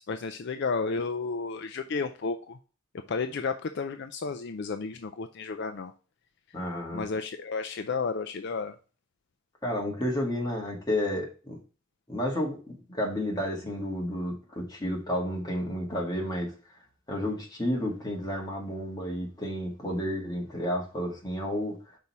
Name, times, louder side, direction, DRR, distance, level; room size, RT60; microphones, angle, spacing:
voice 1, 0.1-2.6 3.1-5.9 6.9-8.7, left 4 dB, 50° left, 7 dB, 0.4 m, -32 dB
voice 2, 6.5-7.1 9.6-11.6 12.1-16.5 17.1-22.0, equal, 20° left, -1 dB, 1.7 m, -31 dB
5.4 x 4.2 x 4.6 m, 0.36 s
head